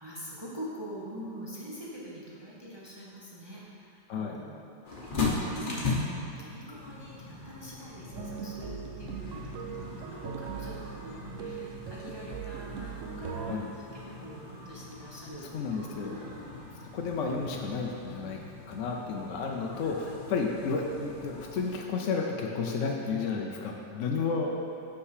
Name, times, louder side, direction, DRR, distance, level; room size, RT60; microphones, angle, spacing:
voice 1, 0.0-5.8 6.2-8.7 9.0-13.6 13.9-16.6 18.1-18.3 19.7-20.0, equal, 25° right, -6 dB, 0.5 m, -45 dB
sound 1, 4.8-21.8, left 3 dB, 35° left, 0.9 m, -39 dB
sound 2, 8.1-13.5, right 7 dB, 90° right, 0.6 m, -40 dB
voice 2, 15.4-16.3 16.9-18.4 18.7-24.6, left 4 dB, 75° left, 0 dB, 0.6 m, -32 dB
6.5 x 5.9 x 4.9 m, 2.5 s
omnidirectional pair, 2.0 m